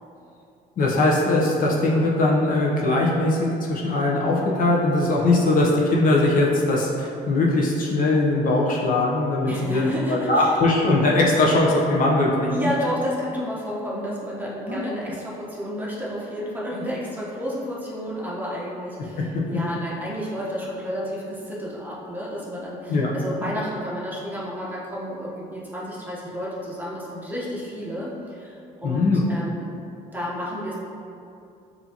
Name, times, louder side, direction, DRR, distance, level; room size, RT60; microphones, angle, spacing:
voice 1, 0.8-3.4 3.7-12.7 14.7-14.9 19.3-19.4 22.9-23.1 28.8-29.2, left 2 dB, 55° left, -3 dB, 0.8 m, -20 dB
voice 2, 9.4-10.6 12.5-29.7 30.1-30.8, equal, 10° right, -7 dB, 1.0 m, -31 dB
6.7 x 2.7 x 2.9 m, 2.6 s
cardioid pair, 110°, 17 cm